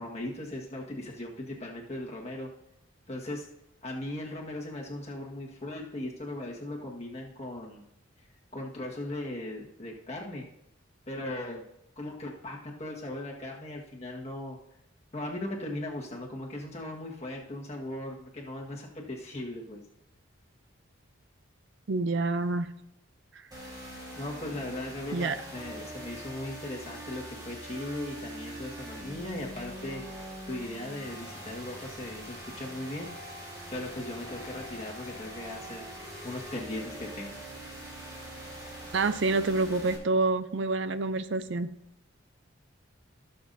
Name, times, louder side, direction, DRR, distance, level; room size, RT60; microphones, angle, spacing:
voice 1, 0.0-2.5 3.1-3.5 3.8-7.8 8.5-10.4 11.1-11.6 12.0-14.6 15.1-19.8 24.2-30.0 30.5-33.1 33.7-35.9 36.2-37.4, left 1 dB, 30° left, -1 dB, 1.5 m, -38 dB
voice 2, 21.9-22.7 25.1-25.4 38.9-41.7, right 3 dB, 55° right, 12 dB, 0.4 m, -27 dB
sound 1, 23.5-40.0, equal, 20° right, 3.8 m, -43 dB
16.5 x 6.9 x 2.7 m, 0.81 s
head